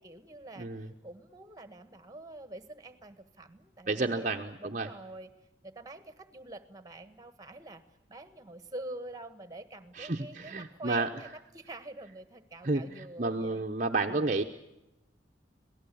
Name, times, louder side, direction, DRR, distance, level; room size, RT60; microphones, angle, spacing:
voice 1, 0.0-5.3 5.6-7.8 8.1-13.7, right 2 dB, 20° right, 11 dB, 1.6 m, -46 dB
voice 2, 0.6-0.9 3.9-4.9 10.0-11.1 12.6-14.4, right 3 dB, 40° right, 4 dB, 0.9 m, -31 dB
27.0 x 18.0 x 8.6 m, 0.93 s
head